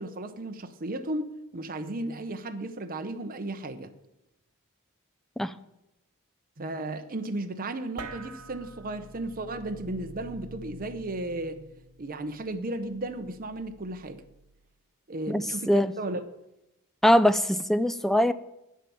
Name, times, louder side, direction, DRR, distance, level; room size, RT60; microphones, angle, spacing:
voice 1, 0.0-3.9 6.6-11.7 12.0-14.2 15.1-16.2, right 2 dB, 40° right, 0.8 m, -35 dB
sound 1, 8.0-14.7, right 2 dB, 75° right, 1.1 m, -47 dB
voice 2, 15.3-15.9 17.0-18.3, equal, ahead, 0.3 m, -22 dB
9.5 x 7.5 x 7.0 m
head